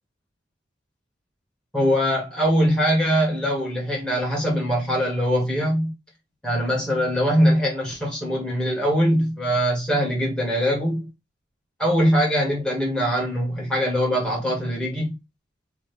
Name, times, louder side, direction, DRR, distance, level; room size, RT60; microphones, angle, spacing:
voice 1, 1.7-5.9 6.4-11.1 11.8-15.2, equal, 5° left, 2.0 m, -22 dB
3.6 x 3.4 x 3.5 m
head